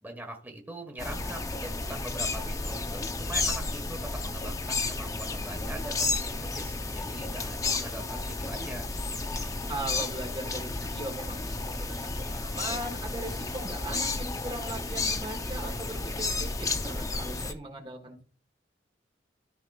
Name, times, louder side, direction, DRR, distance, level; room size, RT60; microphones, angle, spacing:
voice 1, 0.0-8.9, right 1 dB, 10° right, 2 dB, 1.4 m, -42 dB
sound 1, 1.0-17.5, left 3 dB, 20° left, 0.7 m, -32 dB
voice 2, 9.7-18.2, right 2 dB, 30° right, 3 dB, 1.5 m, -39 dB
13.5 x 4.8 x 2.4 m, 0.40 s
head